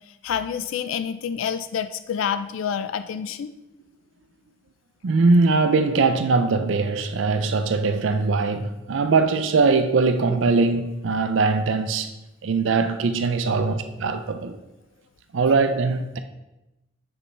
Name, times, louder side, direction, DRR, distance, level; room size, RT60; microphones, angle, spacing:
voice 1, 0.1-3.5 15.5-15.6, left 7 dB, 75° left, 0.3 m, -28 dB
voice 2, 5.0-12.1 12.4-14.6 15.3-16.2, right 4 dB, 65° right, 0.4 m, -21 dB
6.9 x 5.2 x 3.3 m
head